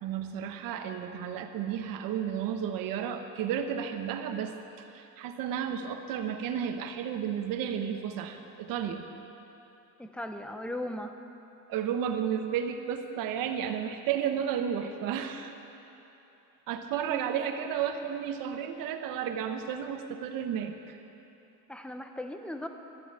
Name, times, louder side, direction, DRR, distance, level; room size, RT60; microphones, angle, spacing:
voice 1, 0.0-4.5 4.8-9.1 11.7-15.5 16.7-21.0, right 8 dB, 65° right, 6 dB, 1.2 m, -32 dB
voice 2, 10.0-11.1 21.7-22.7, left 1 dB, 5° left, 6 dB, 0.6 m, -37 dB
12.5 x 7.8 x 9.7 m, 3.0 s
cardioid pair, 150°, 37 cm